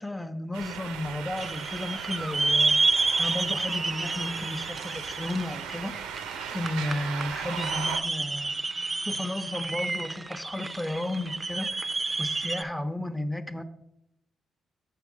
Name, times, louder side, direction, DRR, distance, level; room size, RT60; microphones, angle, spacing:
voice 1, 0.0-2.8 3.2-5.9 6.5-8.6 9.1-13.6, left 1 dB, 10° left, 10 dB, 0.8 m, -33 dB
sound 1, 0.5-8.0, right 8 dB, 85° right, 0.5 m, -38 dB
sound 2, 1.4-12.6, right 3 dB, 30° right, 0.4 m, -30 dB
6.8 x 3.8 x 6.1 m, 0.83 s
hypercardioid pair, 45°, 0 cm